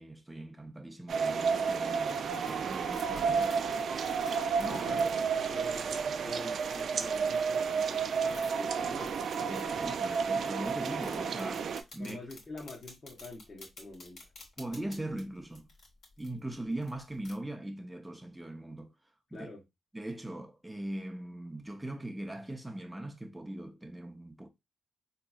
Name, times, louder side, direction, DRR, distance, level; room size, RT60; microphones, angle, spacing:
voice 1, 0.0-3.9 4.6-4.9 9.5-12.2 14.6-15.7 16.2-18.9 19.3-19.5 19.9-24.5, right 1 dB, 10° right, 0.6 m, -40 dB
sound 1, 1.1-11.8, right 6 dB, 65° right, 0.3 m, -31 dB
sound 2, 1.6-17.3, left 2 dB, 70° left, 1.2 m, -55 dB
voice 2, 4.6-9.2 12.0-14.2 19.3-19.6, left 2 dB, 40° left, 0.9 m, -46 dB
3.8 x 2.8 x 2.3 m
cardioid pair, 90°, 0 cm